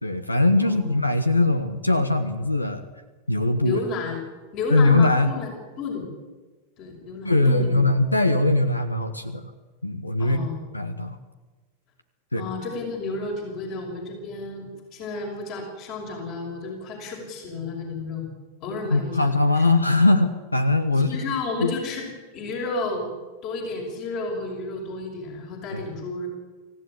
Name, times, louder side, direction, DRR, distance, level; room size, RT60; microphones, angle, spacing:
voice 1, 0.0-2.8 3.3-3.8 4.7-5.4 7.2-9.4 9.8-10.4 10.7-11.2 12.3-12.4 18.9-21.2 21.6-21.7 25.7-25.8, left 2 dB, 85° left, 11 dB, 1.5 m, -21 dB
voice 2, 3.6-4.2 4.5-5.5 5.8-6.1 6.8-7.8 10.2-10.6 12.3-18.3 18.6-19.6 21.0-22.1 22.3-23.1 23.4-26.3, left 3 dB, 40° left, 2 dB, 6.0 m, -32 dB
25.5 x 15.5 x 10.0 m, 1.2 s
figure-of-eight pair, 90°, 0 cm